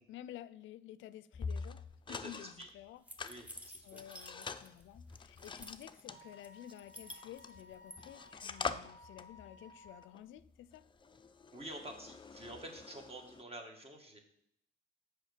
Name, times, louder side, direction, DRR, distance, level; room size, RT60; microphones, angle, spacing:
voice 1, 0.1-1.8 2.1-3.0 3.5-10.8, left 12 dB, 75° left, 16 dB, 0.4 m, -52 dB
sound 1, 1.3-2.7 3.2-7.7 8.0-13.4, left 5 dB, 25° left, 0.5 m, -45 dB
voice 2, 2.1-2.7 3.2-3.5 3.7-4.0 11.5-14.2, right 1 dB, 30° right, 3 dB, 1.7 m, -48 dB
sound 2, 3.1-4.8 5.1-6.0 6.4-8.0, equal, 5° right, 1.0 m, -52 dB
Wind instrument woodwind instrument, 6.1-10.1, left 2 dB, 65° right, 2.1 m, -58 dB
6.3 x 4.8 x 6.6 m, 0.70 s
cardioid pair, 90°, 20 cm